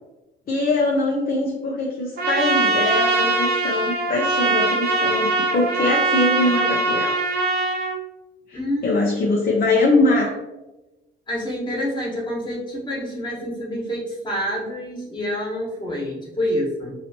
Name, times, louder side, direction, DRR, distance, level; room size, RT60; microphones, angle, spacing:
voice 1, 0.5-7.2 8.5-10.4, left 2 dB, 50° left, -2 dB, 0.7 m, -22 dB
Trumpet, 2.2-7.9, right 3 dB, 50° right, 0.7 m, -21 dB
voice 2, 8.5-9.0 11.3-16.9, equal, 25° left, -4 dB, 1.4 m, -27 dB
3.0 x 2.8 x 2.8 m, 1.0 s
cardioid pair, 90°, 20 cm